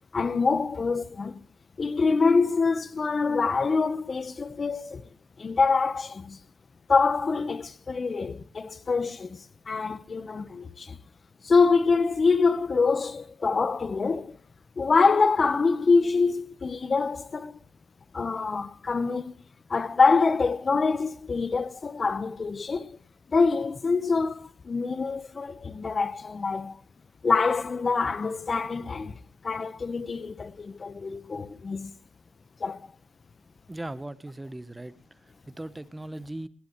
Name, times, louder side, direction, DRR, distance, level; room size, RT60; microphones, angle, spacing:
voice 1, 0.1-1.4 1.8-5.0 5.4-6.4 6.9-11.0 11.4-14.4 14.8-17.6 18.1-19.3 19.7-23.0 23.3-26.8 27.2-29.2 29.4-31.9 32.6-32.9, left 4 dB, 35° left, 1.0 m, -25 dB
voice 2, 33.7-34.9 35.5-36.5, right 1 dB, 10° right, 1.0 m, -38 dB
20.0 x 18.5 x 3.1 m
cardioid pair, 90°, 0 cm